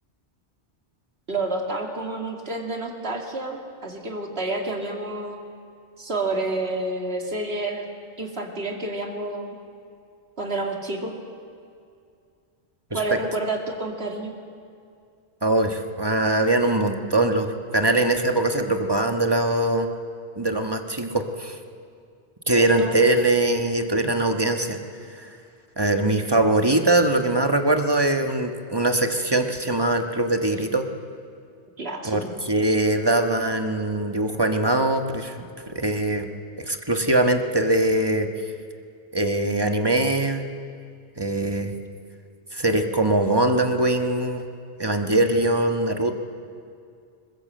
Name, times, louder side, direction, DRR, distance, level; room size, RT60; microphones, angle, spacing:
voice 1, 1.3-5.4 6.0-7.9 8.2-9.6 10.4-11.1 12.9-14.3 22.6-23.0 31.8-32.3, right 2 dB, 65° right, 2 dB, 2.7 m, -29 dB
voice 2, 15.4-19.9 20.4-21.6 22.5-24.8 25.2-25.3 25.8-30.9 32.0-36.3 36.7-38.3 39.1-40.4 41.2-41.7 42.5-44.4 44.8-46.1, right 2 dB, 20° right, 5 dB, 1.4 m, -22 dB
21.5 x 21.0 x 7.8 m, 2.3 s
omnidirectional pair, 1.1 m